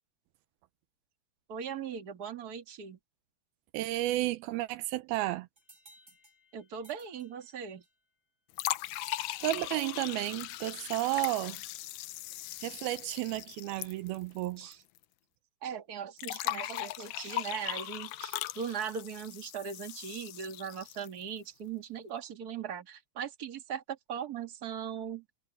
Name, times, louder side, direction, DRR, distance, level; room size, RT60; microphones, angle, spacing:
voice 1, 1.5-3.0 6.5-7.8 14.6-14.8 15.6-25.2, right 7 dB, 40° right, 1.5 m, -39 dB
voice 2, 3.7-5.5 9.4-11.6 12.6-14.7, right 17 dB, 80° right, 2.5 m, -32 dB
sound 1, 5.6-8.1, right 1 dB, 15° right, 6.2 m, -61 dB
sound 2, 8.5-14.7 15.0-15.1 16.2-21.2, left 16 dB, 90° left, 1.9 m, -39 dB
omnidirectional pair, 4.7 m